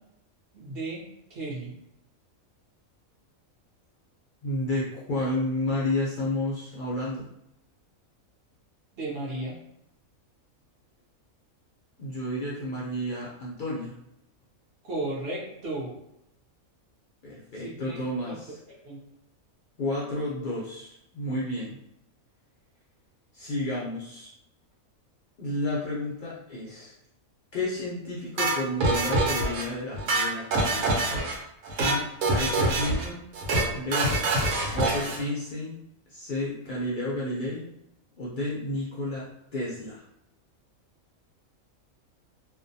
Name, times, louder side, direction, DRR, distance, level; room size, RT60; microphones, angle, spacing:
voice 1, 0.5-1.0 1.3-1.7 9.0-9.6 14.8-16.0 17.6-18.0 18.3-18.4 18.8-19.0, right 2 dB, 55° right, -5 dB, 0.8 m, -34 dB
voice 2, 4.4-7.3 12.0-13.9 17.2-18.6 19.8-21.8 23.3-24.3 25.4-26.9 27.5-31.0 31.8-33.2 33.7-34.2 34.7-35.8 36.1-37.7 38.2-40.0, left 1 dB, 65° left, -7 dB, 0.4 m, -31 dB
sound 1, 28.4-29.6 29.9-31.3 31.6-32.0 32.2-33.1 33.3-33.7 33.9-35.2, right 2 dB, 85° right, 1.1 m, -25 dB
2.5 x 2.1 x 2.6 m, 0.79 s
omnidirectional pair, 1.5 m